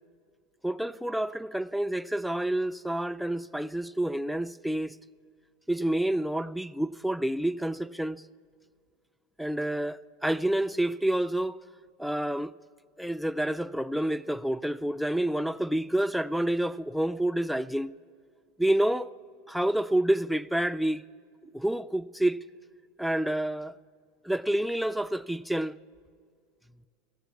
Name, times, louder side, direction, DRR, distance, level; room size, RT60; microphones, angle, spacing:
voice 1, 0.6-5.0 5.7-8.2 9.4-11.6 12.0-12.5 13.0-17.9 18.6-19.1 19.5-21.0 21.5-22.4 23.0-23.7 24.2-25.8, right 1 dB, ahead, 0.4 m, -28 dB
16.5 x 7.5 x 8.2 m
hypercardioid pair, 105°, 0 cm